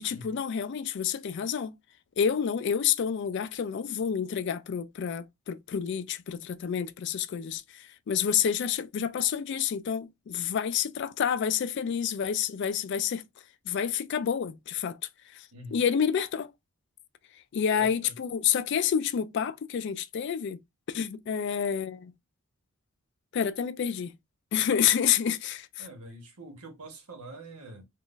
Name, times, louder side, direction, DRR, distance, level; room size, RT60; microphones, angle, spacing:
voice 1, 0.0-1.7 2.2-13.2 13.7-15.0 15.3-15.5 15.7-16.5 17.5-20.6 20.9-22.1 23.3-24.1 24.5-25.8, left 8 dB, 55° left, 0.3 m, -29 dB
voice 2, 15.5-15.8 17.7-18.2 25.8-27.8, right 1 dB, 90° right, 1.2 m, -45 dB
3.7 x 2.4 x 2.4 m
head